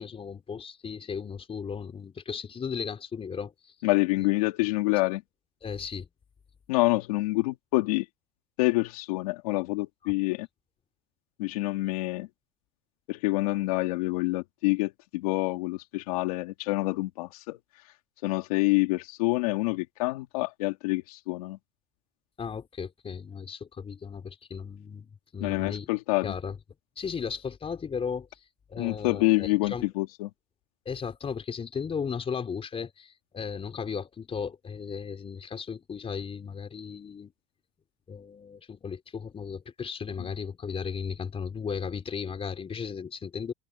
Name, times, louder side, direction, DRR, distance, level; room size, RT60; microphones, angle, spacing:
voice 1, 0.0-3.7 4.2-4.3 5.6-6.1 10.0-10.1 22.4-25.9 26.2-26.6 27.0-29.9 30.8-37.3 38.1-43.5, left 6 dB, 30° left, 4.8 m, -36 dB
voice 2, 3.8-5.2 6.7-8.1 8.6-10.5 11.4-12.3 13.1-17.6 18.2-21.6 25.4-26.3 28.8-30.3, left 21 dB, 90° left, 2.3 m, -27 dB
supercardioid pair, 95°, 18 cm